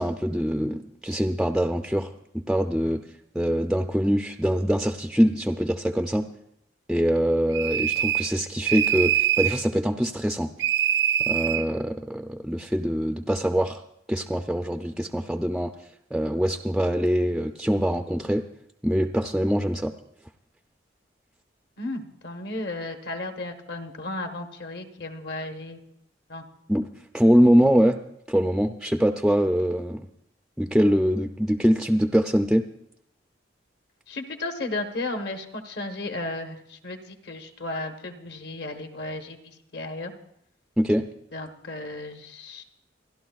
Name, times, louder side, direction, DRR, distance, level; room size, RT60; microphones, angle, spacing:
voice 1, 0.0-2.1 2.5-3.0 3.3-6.3 6.9-10.5 11.3-13.8 14.1-15.7 16.1-18.4 18.8-19.9 26.7-26.9 27.1-28.0 28.3-30.0 30.6-32.6 40.8-41.1, equal, 5° right, 5 dB, 0.4 m, -23 dB
sound 1, 7.5-8.3 8.6-9.6 10.6-11.7, right 10 dB, 75° right, 0.5 m, -24 dB
voice 2, 21.8-25.8 26.3-26.4 34.1-40.1 41.3-42.6, left 2 dB, 60° left, 6 dB, 1.1 m, -34 dB
29.5 x 11.5 x 2.4 m, 0.75 s
head